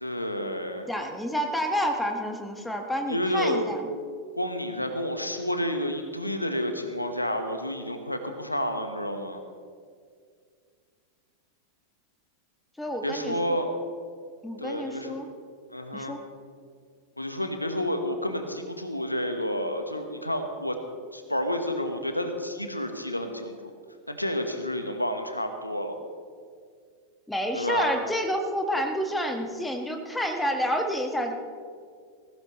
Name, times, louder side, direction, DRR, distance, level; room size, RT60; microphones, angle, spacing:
voice 1, 0.0-0.9 3.1-3.6 4.4-9.4 13.0-13.7 14.6-15.2 15.7-16.2 17.2-20.8 21.1-23.7 24.1-26.0 27.5-28.0, equal, 85° left, 6 dB, 1.2 m, -30 dB
voice 2, 0.9-3.8 12.8-13.6 14.4-15.2 15.9-16.2 27.3-31.3, equal, 5° left, 4 dB, 1.6 m, -29 dB
20.5 x 15.5 x 3.1 m, 2.1 s
figure-of-eight pair, 90°, 0 cm